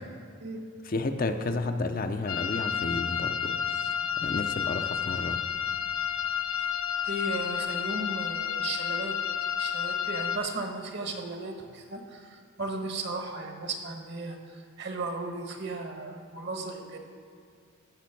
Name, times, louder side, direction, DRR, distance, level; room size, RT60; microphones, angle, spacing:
voice 1, 0.9-3.5 4.2-5.4, left 2 dB, 40° left, 6 dB, 0.6 m, -31 dB
sound 1, 2.3-10.4, left 8 dB, 75° left, 0.8 m, -31 dB
voice 2, 7.0-9.1 9.6-17.0, right 2 dB, 50° right, 3 dB, 1.4 m, -36 dB
14.5 x 6.1 x 5.9 m, 2.3 s
head